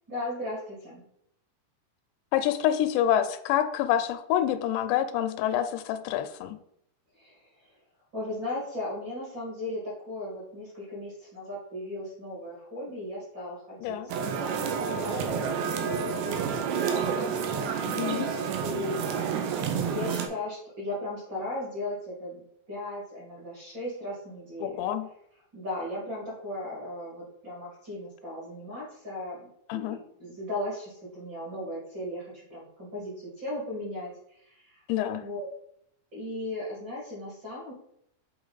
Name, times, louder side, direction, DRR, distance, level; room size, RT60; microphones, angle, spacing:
voice 1, 0.1-1.0 7.2-7.5 8.1-13.9 14.2-17.2 18.5-24.7 25.5-34.8 35.1-35.5 36.1-37.7, left 1 dB, 40° right, -7 dB, 1.9 m, -37 dB
voice 2, 2.3-6.6 13.8-14.1 17.8-18.3 24.6-25.1 29.7-30.0 34.9-35.2, left 11 dB, 85° left, 10 dB, 2.7 m, -27 dB
sound 1, 14.1-20.3, right 6 dB, 90° right, 3.0 m, -29 dB
8.1 x 3.5 x 3.9 m, 0.74 s
omnidirectional pair, 4.9 m